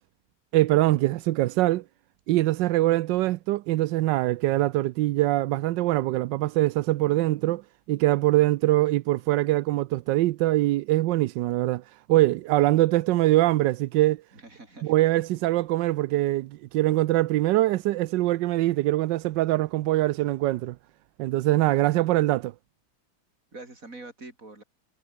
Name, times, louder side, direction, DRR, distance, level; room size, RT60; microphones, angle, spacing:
voice 1, 0.5-1.8 2.3-7.6 7.9-14.2 14.8-20.8 21.2-22.5, right 16 dB, 70° right, 1.1 m, -23 dB
voice 2, 14.3-14.9 23.5-24.6, right 2 dB, 40° right, 5.4 m, -44 dB
omnidirectional pair, 2.3 m